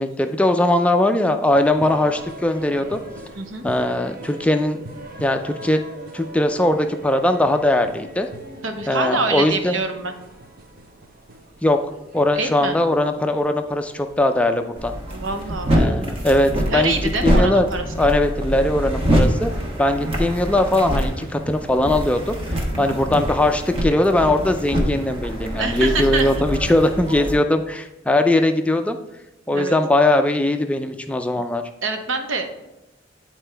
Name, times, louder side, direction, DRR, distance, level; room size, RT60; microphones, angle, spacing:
voice 1, 0.0-3.0 3.6-4.8 5.2-5.8 6.1-8.3 8.9-9.8 11.6-11.8 12.1-14.9 15.7-16.9 17.2-17.7 18.0-19.5 19.8-29.0 29.5-31.6, left 1 dB, 5° left, 6 dB, 0.3 m, -20 dB
sound 1, 1.5-15.0, right 1 dB, 50° right, 0.8 m, -41 dB
voice 2, 3.3-3.7 8.6-10.1 12.3-12.8 15.0-16.1 16.6-17.8 22.7-23.0 25.5-26.4 29.5-29.8 31.8-32.6, right 3 dB, 85° right, 5 dB, 0.9 m, -26 dB
sound 2, 14.8-27.3, equal, 30° right, 1.2 m, -24 dB
9.3 x 4.4 x 3.4 m, 0.97 s
head